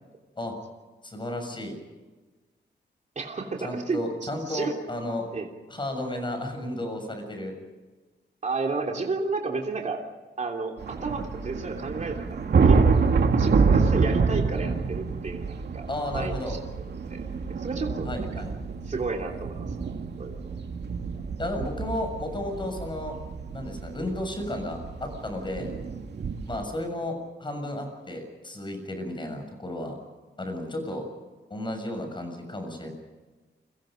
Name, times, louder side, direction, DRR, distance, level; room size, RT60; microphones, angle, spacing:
voice 1, 1.0-1.8 3.6-5.3 5.7-7.5 15.9-16.6 18.0-18.5 21.4-23.2 23.5-25.7 26.5-30.0 30.4-31.1 31.5-32.9, left 1 dB, 25° left, 5 dB, 7.0 m, -33 dB
voice 2, 3.1-4.7 5.3-5.5 8.4-10.0 10.4-12.4 12.6-12.9 13.3-15.9 16.1-16.6 17.1-17.2 17.5-18.4 18.9-20.6 26.2-26.3, right 3 dB, 40° right, 1 dB, 3.2 m, -32 dB
sound 1, 10.8-26.6, right 4 dB, 65° right, 2.6 m, -27 dB
29.5 x 24.0 x 5.2 m, 1.3 s
wide cardioid pair, 155°, 18 cm